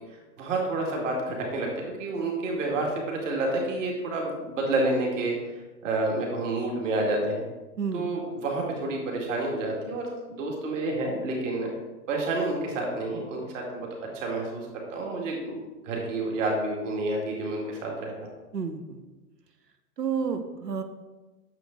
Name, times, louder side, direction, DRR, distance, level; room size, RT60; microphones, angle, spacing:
voice 1, 0.1-7.4 7.9-11.7 12.1-13.9 14.1-15.6 15.8-18.1, right 2 dB, 50° right, 0 dB, 2.2 m, -29 dB
voice 2, 7.8-8.1 18.5-19.1 20.0-20.8, right 6 dB, 75° right, 8 dB, 1.0 m, -30 dB
8.9 x 6.9 x 3.8 m, 1.2 s
figure-of-eight pair, 110°, 49 cm